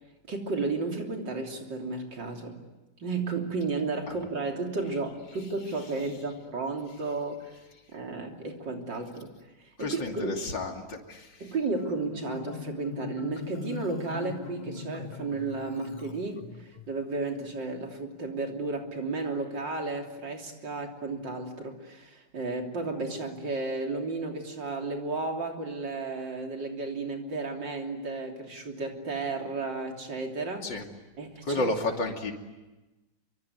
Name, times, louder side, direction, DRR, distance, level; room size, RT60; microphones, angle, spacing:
voice 1, 0.3-2.6 3.0-7.5 7.9-9.3 9.8-10.4 11.4-30.7 31.2-31.7, right 3 dB, 75° right, 2 dB, 3.9 m, -33 dB
voice 2, 9.8-11.5 30.6-30.9 31.4-32.3, left 2 dB, 80° left, 3 dB, 3.5 m, -31 dB
Marimba xylophone, 11.8-16.9, left 6 dB, 30° left, 1.0 m, -40 dB
25.5 x 24.5 x 9.5 m, 1.1 s
omnidirectional pair, 2.0 m